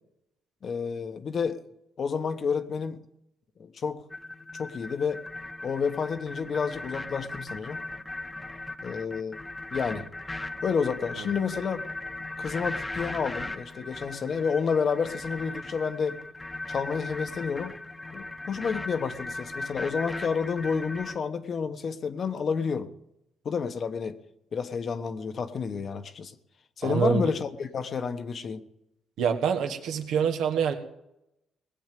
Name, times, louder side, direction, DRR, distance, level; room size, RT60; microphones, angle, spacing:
voice 1, 0.6-1.7 2.0-3.0 3.6-4.0 4.6-5.2 5.6-7.8 8.8-9.4 9.7-10.1 10.6-11.8 12.4-16.2 16.7-17.8 18.1-22.9 23.4-24.2 24.5-26.3 26.8-28.6, left 6 dB, 50° left, 1.1 m, -30 dB
sound 1, 4.1-21.1, left 2 dB, 15° left, 1.0 m, -38 dB
voice 2, 26.8-27.2 29.2-30.7, right 7 dB, 85° right, 1.6 m, -26 dB
19.0 x 8.0 x 7.6 m
cardioid pair, 90°, 0 cm